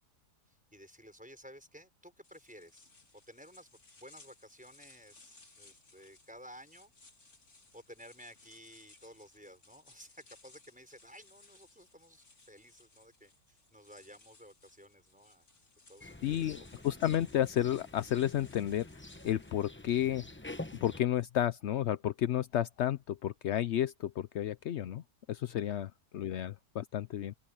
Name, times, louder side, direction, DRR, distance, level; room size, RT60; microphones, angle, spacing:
voice 1, 0.5-2.9 3.3-6.9 7.7-15.5 15.9-16.7 17.0-17.2 25.5-25.8, equal, 5° right, 5.7 m, -55 dB
sound 1, 2.2-19.7, left 3 dB, 45° left, 3.3 m, -62 dB
sound 2, 16.0-21.0, left 1 dB, 10° left, 0.5 m, -47 dB
voice 2, 16.2-18.9 19.2-20.2 20.8-25.0 25.3-27.3, left 11 dB, 75° left, 0.6 m, -32 dB
open air
omnidirectional pair, 1.8 m